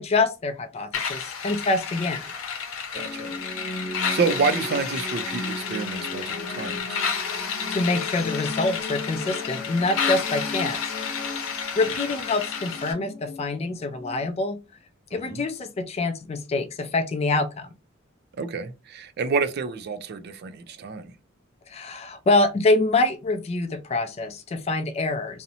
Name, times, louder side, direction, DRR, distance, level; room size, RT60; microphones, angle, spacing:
voice 1, 0.0-2.2 7.7-10.8 11.1-11.3 11.8-14.6 15.1-17.7 21.7-25.4, left 2 dB, 30° left, 0.3 m, -25 dB
sound 1, 0.9-12.9, left 6 dB, 90° left, 0.7 m, -31 dB
sound 2, 2.9-14.3, left 2 dB, 50° left, 1.0 m, -36 dB
voice 2, 2.9-7.0 12.1-12.2 15.1-15.4 18.4-21.1, right 4 dB, 55° right, 0.4 m, -29 dB
2.7 x 2.0 x 2.7 m
head